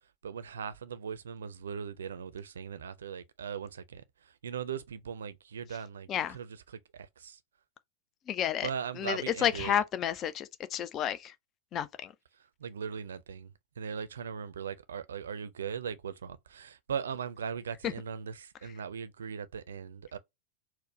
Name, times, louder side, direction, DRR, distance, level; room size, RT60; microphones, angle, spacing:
voice 1, 0.2-4.0 4.4-7.4 8.6-9.7 12.6-20.2, right 7 dB, 65° right, 0.4 m, -39 dB
voice 2, 8.3-8.7 9.0-11.3 11.7-12.1 17.8-17.9, left 9 dB, 30° left, 0.4 m, -31 dB
4.4 x 2.1 x 3.1 m
figure-of-eight pair, 90°, 0 cm